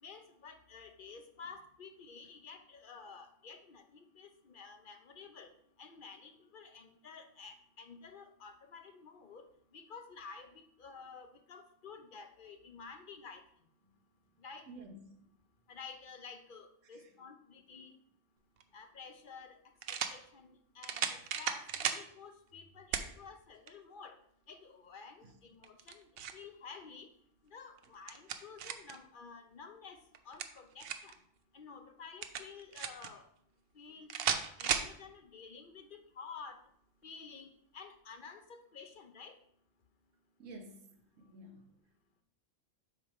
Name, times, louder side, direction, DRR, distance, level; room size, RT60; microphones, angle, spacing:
voice 1, 0.0-5.5 5.8-9.5 9.7-13.4 14.4-14.7 15.7-17.9 18.7-19.6 19.9-24.2 24.5-27.1 27.4-31.2 31.5-33.3 33.7-36.6 37.0-37.5 37.7-39.4, left 5 dB, 50° left, 0.7 m, -51 dB
voice 2, 14.7-15.2 40.4-41.7, right 1 dB, 80° right, 1.3 m, -51 dB
sound 1, 18.6-18.7 19.8-20.2 20.8-22.0 22.9-23.1 23.7-23.8 25.6-26.4 27.8-29.0 30.1-31.2 32.2-33.1 34.1-34.9, right 8 dB, 60° right, 0.7 m, -35 dB
8.0 x 3.3 x 5.3 m
omnidirectional pair, 1.3 m